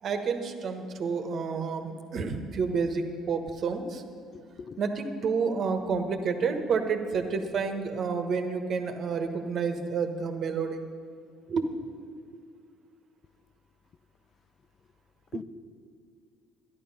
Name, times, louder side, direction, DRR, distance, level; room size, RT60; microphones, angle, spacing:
voice 1, 0.0-4.0 4.8-10.8 11.5-11.6 15.3-15.4, right 5 dB, 55° right, 1.2 m, -29 dB
voice 2, 4.3-4.8 15.3-15.4, left 6 dB, 50° left, 0.3 m, -42 dB
12.0 x 10.5 x 5.6 m
hypercardioid pair, 60°, 0 cm